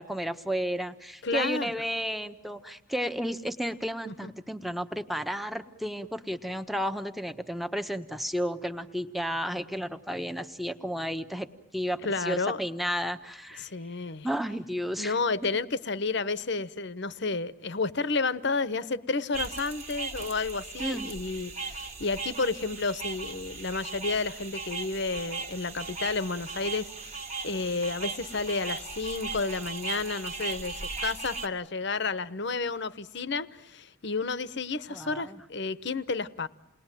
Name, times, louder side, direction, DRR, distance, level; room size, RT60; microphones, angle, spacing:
voice 1, 0.0-11.5 11.7-13.7 14.2-15.2 20.8-21.1 34.9-35.4, equal, ahead, 1.0 m, -32 dB
voice 2, 1.2-1.7 4.1-4.3 12.0-12.6 13.6-14.3 15.0-36.5, left 3 dB, 55° left, 1.0 m, -31 dB
sound 1, 19.3-31.5, right 4 dB, 30° right, 1.6 m, -38 dB
29.0 x 20.5 x 9.1 m
head